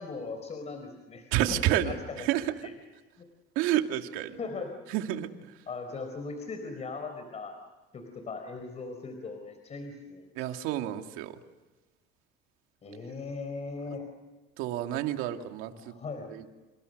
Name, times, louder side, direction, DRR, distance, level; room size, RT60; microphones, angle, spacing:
voice 1, 0.0-2.7 3.2-3.3 4.4-4.7 5.7-7.6 7.9-10.5 12.8-14.1 15.7-16.3, left 4 dB, 30° left, 6 dB, 4.2 m, -39 dB
voice 2, 1.3-2.5 3.6-4.4 4.9-5.3 10.4-11.3 14.6-15.9 16.3-16.4, right 12 dB, 80° right, 6 dB, 2.4 m, -29 dB
30.0 x 27.5 x 6.6 m, 1.2 s
cardioid pair, 125°, 21 cm